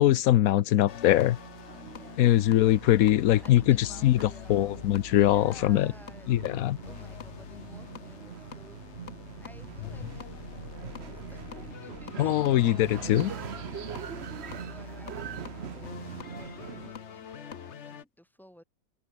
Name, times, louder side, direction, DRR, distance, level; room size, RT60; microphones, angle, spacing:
voice 1, 0.0-1.4 2.2-5.9 6.3-6.8 12.2-13.3, left 13 dB, 90° left, 0.7 m, -22 dB
sound 1, 0.9-18.0, left 8 dB, 45° left, 1.0 m, -45 dB
sound 2, 1.4-16.9, right 8 dB, 60° right, 0.7 m, -43 dB
voice 2, 1.9-2.3 3.4-4.8 5.2-6.4 6.8-9.1 9.4-18.6, equal, ahead, 7.5 m, -55 dB
omnidirectional pair, 2.2 m